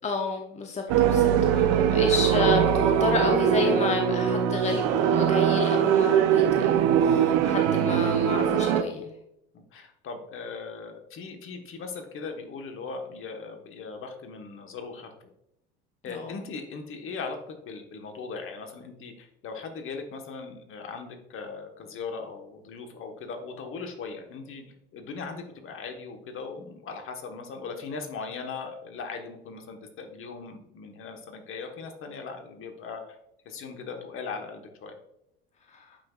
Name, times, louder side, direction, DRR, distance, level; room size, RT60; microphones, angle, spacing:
voice 1, 0.0-9.1 16.1-16.4 35.7-35.8, left 4 dB, 20° left, 3 dB, 0.9 m, -31 dB
sound 1, 0.9-8.8, right 9 dB, 55° right, 0.7 m, -22 dB
voice 2, 9.5-15.1 16.0-24.6 24.9-33.2 33.4-35.0, left 4 dB, 45° left, 4 dB, 1.3 m, -39 dB
8.7 x 5.8 x 2.4 m, 0.82 s
figure-of-eight pair, 65°, 30 cm